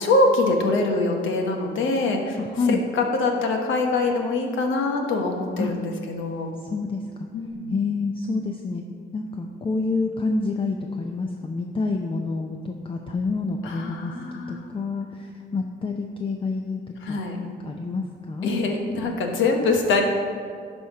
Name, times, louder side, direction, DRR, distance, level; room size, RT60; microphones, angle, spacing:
voice 1, 0.0-2.4 2.7-6.5 7.3-7.7 13.6-14.7 17.0-17.4 18.4-20.0, left 3 dB, 80° left, 3 dB, 1.2 m, -24 dB
voice 2, 2.4-2.8 5.6-5.7 6.6-7.0 7.7-8.8 9.1-14.1 14.5-18.5, left 3 dB, 25° left, 3 dB, 0.6 m, -28 dB
11.5 x 4.4 x 4.9 m, 2.1 s
cardioid pair, 90°, 20 cm